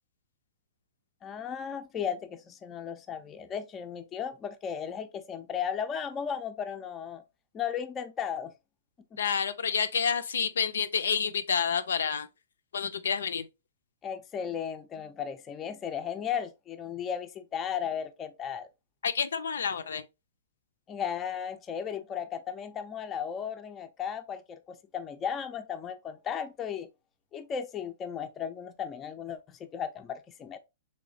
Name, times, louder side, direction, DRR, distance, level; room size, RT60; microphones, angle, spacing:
voice 1, 1.2-7.2 7.5-8.5 9.1-9.2 14.0-18.7 20.9-26.9 27.3-30.6, left 8 dB, 20° left, 0.4 m, -35 dB
voice 2, 9.2-12.3 12.7-13.5 19.0-20.1, left 6 dB, 85° left, 0.4 m, -29 dB
3.1 x 3.1 x 2.6 m
hypercardioid pair, 140°, 0 cm